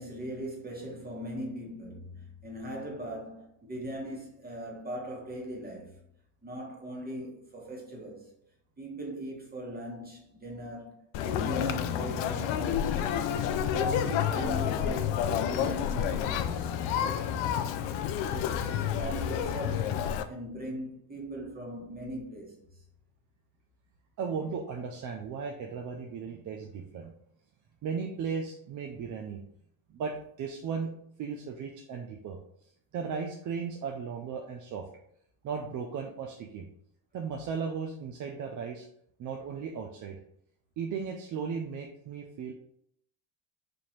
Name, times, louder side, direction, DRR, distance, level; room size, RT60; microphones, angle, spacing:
voice 1, 0.0-6.0 6.4-8.2 8.8-12.9 13.7-17.6 18.3-19.9 20.3-22.5, right 1 dB, 20° right, 1.4 m, -40 dB
Conversation, 11.1-20.2, left 9 dB, 70° left, 0.5 m, -29 dB
voice 2, 24.2-27.1 27.8-29.4 29.9-30.9 31.2-34.9 35.4-36.7 37.1-38.9 39.2-40.2 40.8-42.5, right 6 dB, 40° right, 0.5 m, -36 dB
4.3 x 2.8 x 3.1 m
supercardioid pair, 100°, 48 cm